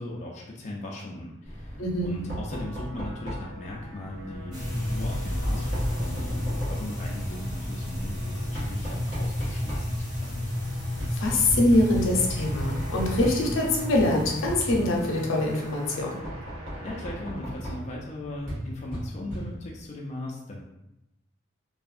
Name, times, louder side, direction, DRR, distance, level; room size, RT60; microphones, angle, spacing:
voice 1, 0.0-10.4 16.8-20.6, left 1 dB, 35° left, -3 dB, 0.3 m, -38 dB
Knock, 1.4-19.9, equal, 65° right, 1.4 m, -37 dB
voice 2, 1.8-2.1 11.1-16.2, left 1 dB, 75° left, -1 dB, 0.6 m, -24 dB
sound 1, 2.0-18.3, right 1 dB, 85° right, 1.2 m, -48 dB
sound 2, 4.5-16.2, left 1 dB, 35° right, 1.4 m, -32 dB
2.7 x 2.4 x 2.4 m, 0.89 s
head